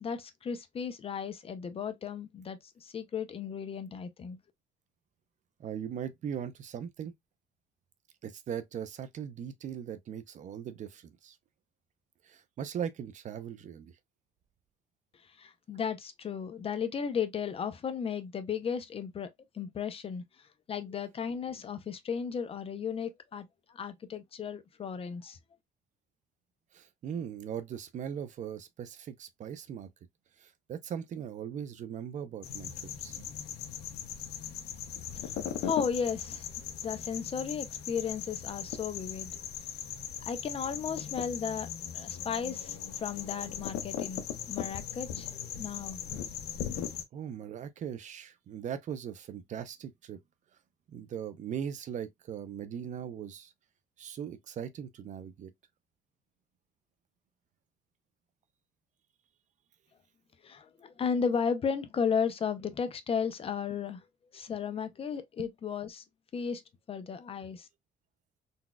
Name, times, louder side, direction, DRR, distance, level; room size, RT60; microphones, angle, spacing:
voice 1, 0.0-4.4 15.4-19.3 19.5-20.2 20.7-23.5 23.7-25.4 35.6-39.4 40.3-41.7 41.9-46.0 60.4-64.0 64.3-66.0 66.3-66.6 66.9-67.7, left 6 dB, 35° left, 0.5 m, -34 dB
voice 2, 5.6-7.1 8.2-11.4 12.2-13.9 26.7-29.9 30.4-32.7 33.0-33.3 47.1-50.2 50.9-53.5 54.0-55.5 65.4-65.5, right 8 dB, 45° right, 0.5 m, -39 dB
sound 1, 32.4-47.0, left 9 dB, 75° left, 0.6 m, -39 dB
3.9 x 2.3 x 2.2 m
cardioid pair, 110°, 17 cm